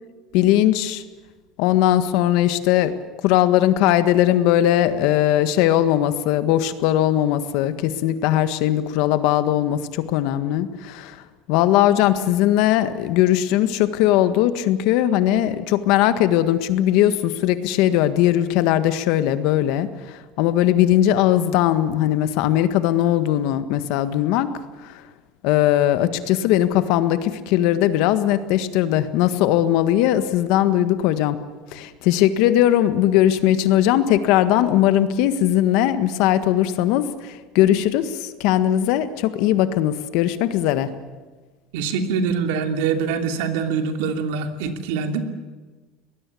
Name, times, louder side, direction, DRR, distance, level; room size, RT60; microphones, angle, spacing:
voice 1, 0.3-1.0 1.6-2.9 3.2-11.2 11.5-19.9 20.4-24.5 25.4-31.4 31.7-40.9, left 12 dB, 60° left, 11 dB, 1.6 m, -19 dB
voice 2, 41.7-45.2, right 5 dB, 85° right, 6 dB, 2.8 m, -24 dB
23.5 x 20.0 x 8.5 m, 1.3 s
cardioid pair, 165°, 0 cm